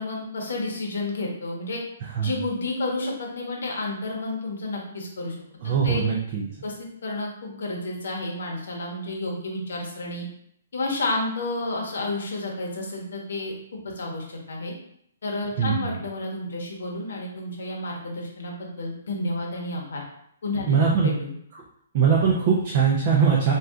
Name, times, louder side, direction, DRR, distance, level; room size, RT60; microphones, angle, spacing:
voice 1, 0.0-1.8 2.2-5.3 5.6-6.0 6.6-10.2 10.7-13.5 13.8-14.7 15.2-20.0 20.4-21.4, left 2 dB, 65° left, 0 dB, 0.8 m, -31 dB
voice 2, 5.6-6.4 15.6-15.9 20.7-21.1 21.9-23.5, right 6 dB, 30° right, -2 dB, 0.4 m, -21 dB
2.7 x 2.3 x 3.5 m, 0.71 s
hypercardioid pair, 175°, 0 cm